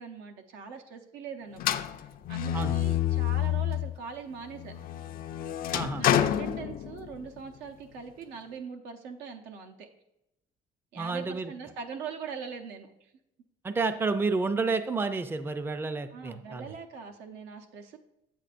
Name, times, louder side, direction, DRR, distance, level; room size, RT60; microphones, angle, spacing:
voice 1, 0.0-4.7 5.9-9.9 10.9-13.1 16.1-18.0, right 6 dB, 90° right, 5 dB, 0.8 m, -42 dB
sound 1, 1.6-4.0 4.4-7.3, left 11 dB, 60° left, 0.4 m, -28 dB
voice 2, 5.7-6.1 11.0-11.5 13.6-16.7, right 3 dB, 15° right, 10 dB, 0.4 m, -30 dB
7.8 x 6.8 x 2.5 m, 0.84 s
cardioid pair, 110°, 17 cm